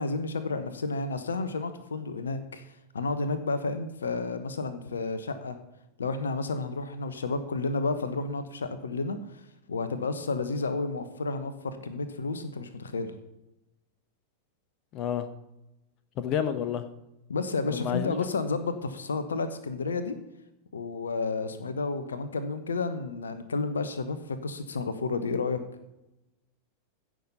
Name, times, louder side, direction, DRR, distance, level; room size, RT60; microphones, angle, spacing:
voice 1, 0.0-2.6 2.9-5.6 6.0-9.4 9.7-13.1 17.3-20.1 20.7-25.6, left 3 dB, 70° left, 11 dB, 1.1 m, -31 dB
voice 2, 14.9-15.3 16.2-16.8 17.7-18.3, left 9 dB, 40° left, 10 dB, 1.0 m, -29 dB
16.0 x 6.3 x 5.5 m, 0.91 s
figure-of-eight pair, 90°, 0 cm